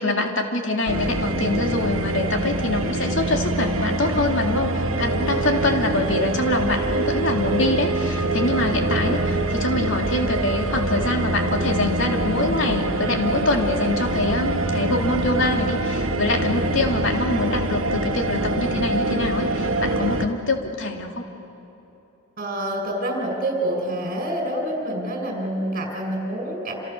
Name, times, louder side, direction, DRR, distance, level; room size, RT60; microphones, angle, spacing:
voice 1, 0.0-21.3, left 2 dB, 70° left, 2 dB, 2.7 m, -24 dB
sound 1, 0.9-20.3, right 2 dB, 90° right, 1.5 m, -24 dB
voice 2, 22.4-26.7, right 1 dB, 45° right, 2 dB, 5.8 m, -27 dB
28.0 x 27.5 x 6.7 m, 2.9 s
head